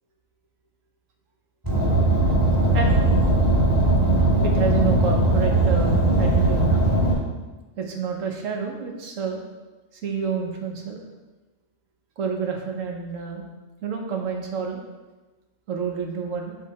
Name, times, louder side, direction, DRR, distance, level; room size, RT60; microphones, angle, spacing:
Car, 1.6-7.1, right 2 dB, 15° right, 1.8 m, -19 dB
voice 1, 4.4-6.9 7.8-9.4 10.0-11.0 12.2-13.4 13.8-14.8 15.7-16.6, right 5 dB, 85° right, 2 dB, 1.2 m, -29 dB
7.5 x 3.7 x 4.2 m, 1.2 s
omnidirectional pair, 1.3 m